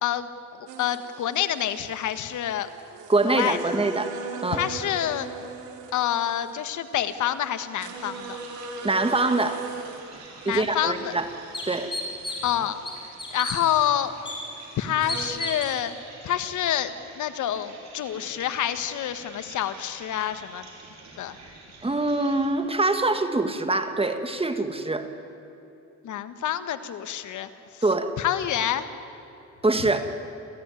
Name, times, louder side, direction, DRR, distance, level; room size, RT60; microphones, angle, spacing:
sound 1, 0.7-15.3, right 4 dB, 90° right, 2.8 m, -41 dB
voice 1, 0.8-2.7 3.3-3.6 4.5-5.3 5.9-8.4 10.4-11.1 12.4-12.8 13.3-14.1 14.8-15.9 16.2-20.6 21.2-21.4 26.0-27.5 27.7-27.8 28.2-28.8, left 11 dB, 75° left, 11 dB, 1.5 m, -27 dB
voice 2, 3.1-4.1 4.4-4.6 8.8-9.6 10.5-11.3 11.7-11.9 21.8-25.1 27.8-28.1 29.6-30.1, right 2 dB, 20° right, 8 dB, 1.9 m, -24 dB
sound 2, 7.7-22.5, right 3 dB, 65° right, 6.0 m, -48 dB
sound 3, 10.5-10.6 11.1-11.2 11.5-12.5 12.8-13.6 14.2-14.4 15.1-15.7, left 1 dB, 15° left, 6.8 m, -32 dB
28.0 x 15.5 x 9.8 m, 2.9 s
cardioid pair, 90°, 30 cm